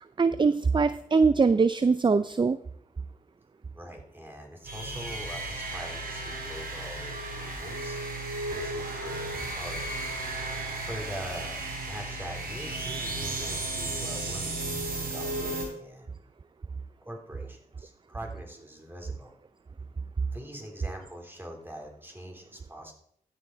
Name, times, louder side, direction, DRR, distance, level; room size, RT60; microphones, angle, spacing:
voice 1, 0.2-2.6, right 4 dB, 30° right, 14 dB, 0.4 m, -22 dB
voice 2, 3.7-8.0 8.5-10.0 10.7-11.6 11.8-16.1 17.0-19.4 20.3-22.9, equal, 15° right, 2 dB, 3.5 m, -43 dB
sound 1, 4.6-15.6, right 2 dB, 80° right, 3.7 m, -34 dB
14.0 x 5.9 x 4.6 m, 0.68 s
cardioid pair, 45°, 15 cm